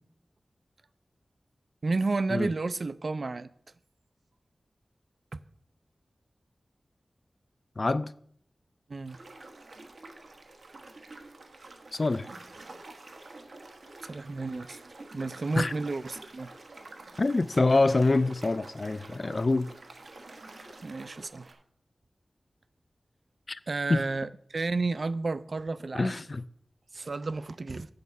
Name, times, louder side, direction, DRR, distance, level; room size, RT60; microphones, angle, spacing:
voice 1, 1.8-3.5 8.9-9.2 14.0-14.8 15.1-16.5 20.8-21.6 23.7-26.1 26.9-27.9, right 3 dB, 60° right, 0.4 m, -31 dB
voice 2, 7.8-8.1 11.9-12.3 15.6-15.7 17.2-19.7 23.5-23.6 23.9-24.1 25.9-26.4, left 3 dB, 45° left, 0.3 m, -25 dB
sound 1, 9.0-21.5, right 2 dB, 80° right, 1.2 m, -48 dB
8.1 x 6.5 x 5.4 m
wide cardioid pair, 95°, 0 cm